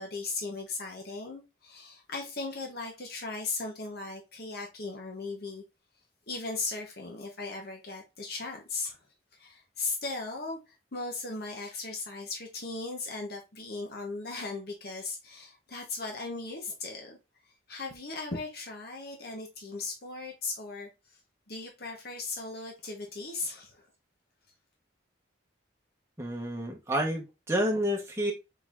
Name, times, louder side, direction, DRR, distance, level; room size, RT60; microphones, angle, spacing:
voice 1, 0.0-5.6 6.3-9.0 9.3-10.6 10.9-17.2 17.7-20.9 21.5-23.9, left 3 dB, 50° left, 0.9 m, -37 dB
voice 2, 26.2-28.3, equal, 15° right, 0.9 m, -29 dB
4.4 x 3.9 x 2.4 m
head